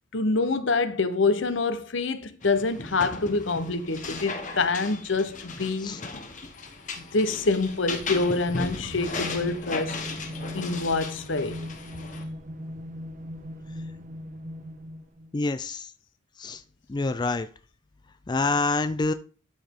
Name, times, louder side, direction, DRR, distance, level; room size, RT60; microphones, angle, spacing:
voice 1, 0.1-5.9 7.1-10.0 10.5-11.6, left 3 dB, 70° left, 1.0 m, -26 dB
sound 1, 2.4-12.2, left 3 dB, 40° left, 1.4 m, -37 dB
sound 2, 7.7-15.3, equal, 40° right, 0.9 m, -39 dB
voice 2, 15.3-15.9 16.4-16.6 16.9-17.5 18.3-19.1, left 3 dB, 20° left, 0.4 m, -26 dB
12.5 x 5.1 x 3.7 m
head